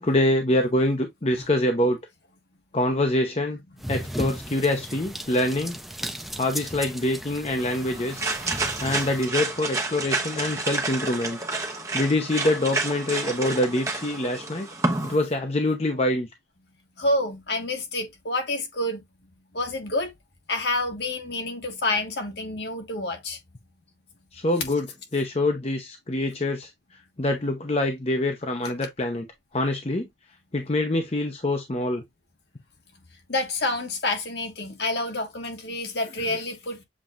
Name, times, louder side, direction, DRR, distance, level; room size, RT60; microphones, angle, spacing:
voice 1, 0.0-2.0 2.7-3.6 3.9-5.8 6.4-8.3 8.8-11.4 11.7-14.7 15.0-16.3 24.3-24.9 25.1-26.7 27.2-29.3 29.5-30.1 30.5-32.0, left 1 dB, 35° left, 0.7 m, -25 dB
sound 1, 3.8-9.3, equal, ahead, 0.5 m, -36 dB
sound 2, 7.6-15.1, right 3 dB, 20° right, 0.9 m, -30 dB
voice 2, 17.0-19.0 19.5-20.1 20.5-23.4 33.3-36.8, left 2 dB, 70° left, 1.5 m, -28 dB
7.3 x 2.9 x 2.5 m
head